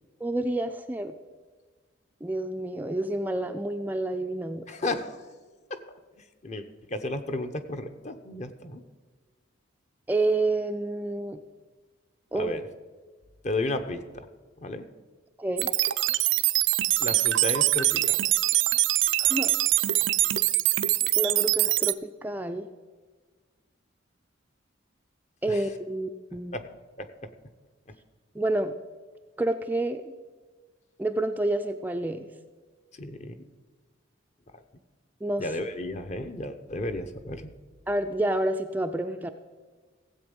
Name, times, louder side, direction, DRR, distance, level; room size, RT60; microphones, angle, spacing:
voice 1, 0.2-1.2 2.2-4.7 10.1-11.4 12.3-12.6 15.4-15.7 19.2-19.5 19.9-20.0 21.2-22.7 25.4-26.6 28.4-28.7 29.4-30.1 31.0-32.3 35.2-35.5 37.9-39.3, right 2 dB, 10° right, 6 dB, 0.4 m, -29 dB
voice 2, 4.7-5.2 6.4-8.8 12.3-12.6 13.4-14.3 14.6-14.9 17.0-18.2 25.5-25.6 26.5-26.6 27.0-27.1 33.0-33.4 35.4-37.5, left 2 dB, 35° left, 8 dB, 0.8 m, -33 dB
sound 1, 15.6-21.9, right 16 dB, 75° right, 0.5 m, -23 dB
16.0 x 7.9 x 5.3 m, 1.4 s
head